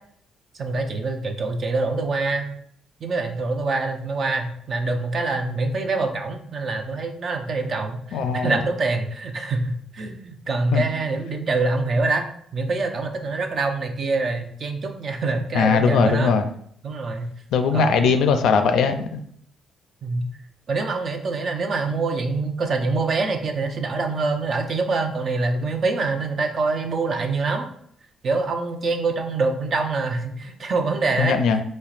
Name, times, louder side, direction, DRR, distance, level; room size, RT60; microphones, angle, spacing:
voice 1, 0.5-2.5 3.0-12.2 12.5-16.3 16.8-17.3 17.7-18.0 20.0-20.2 20.7-27.7 28.2-31.4, right 3 dB, 55° right, 5 dB, 0.6 m, -25 dB
voice 2, 8.1-8.6 10.7-10.8 15.5-16.4 17.5-19.2 31.2-31.6, left 5 dB, 80° left, 8 dB, 0.4 m, -20 dB
4.5 x 3.2 x 2.5 m, 0.65 s
cardioid pair, 90°, 0 cm